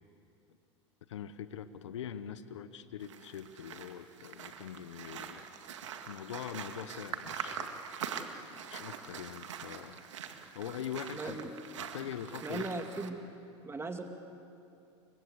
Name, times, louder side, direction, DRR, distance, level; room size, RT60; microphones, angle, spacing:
voice 1, 1.1-5.5 6.1-7.8 8.7-10.0 10.5-11.4 11.8-12.7, left 9 dB, 85° left, 12 dB, 1.1 m, -43 dB
sound 1, 3.0-13.1, right 7 dB, 85° right, 2.0 m, -43 dB
voice 2, 11.1-11.5 12.4-13.2 13.6-14.0, right 3 dB, 15° right, 5 dB, 2.4 m, -38 dB
29.5 x 24.5 x 8.1 m, 2.6 s
hypercardioid pair, 85°, 15 cm